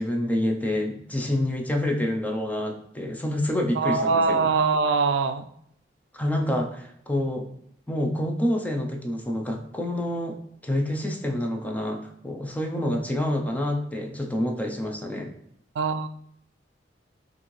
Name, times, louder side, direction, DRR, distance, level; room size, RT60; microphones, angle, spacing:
voice 1, 0.0-4.5 6.1-7.5 7.9-10.4 10.6-15.3, left 1 dB, 10° left, 2 dB, 0.5 m, -27 dB
voice 2, 3.8-5.5 15.8-16.1, right 4 dB, 75° right, 9 dB, 0.3 m, -22 dB
6.1 x 2.6 x 3.1 m, 0.72 s
head